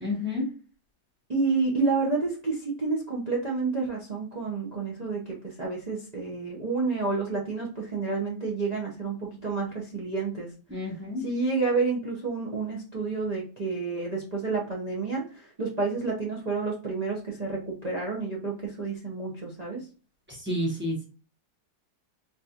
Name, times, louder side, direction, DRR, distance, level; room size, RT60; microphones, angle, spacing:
voice 1, 0.0-0.4 10.7-11.2 20.5-21.0, left 1 dB, 10° right, -2 dB, 0.7 m, -29 dB
voice 2, 1.3-10.5 11.2-19.8, right 4 dB, 55° right, -3 dB, 0.4 m, -29 dB
4.5 x 2.5 x 2.8 m, 0.38 s
omnidirectional pair, 2.0 m